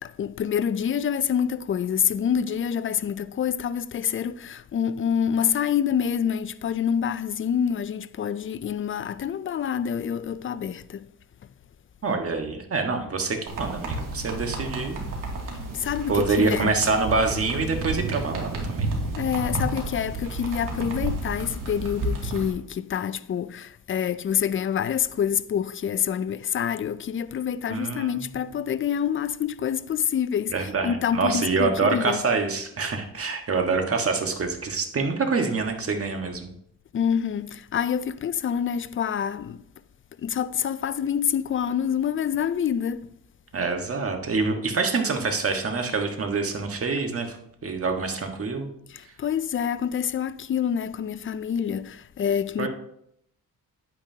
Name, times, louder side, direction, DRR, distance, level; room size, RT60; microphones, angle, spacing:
voice 1, 0.0-11.1 15.7-16.7 19.2-32.2 36.9-39.6 40.2-43.1 48.9-52.7, left 8 dB, 35° left, 0.4 m, -27 dB
voice 2, 12.0-15.0 16.1-18.9 27.7-28.3 30.5-36.5 43.5-47.4 47.6-48.7 52.6-52.7, right 4 dB, 40° right, 1.5 m, -26 dB
sound 1, 13.5-22.5, right 2 dB, 65° right, 2.5 m, -31 dB
9.7 x 9.1 x 2.8 m
cardioid pair, 95°, 35 cm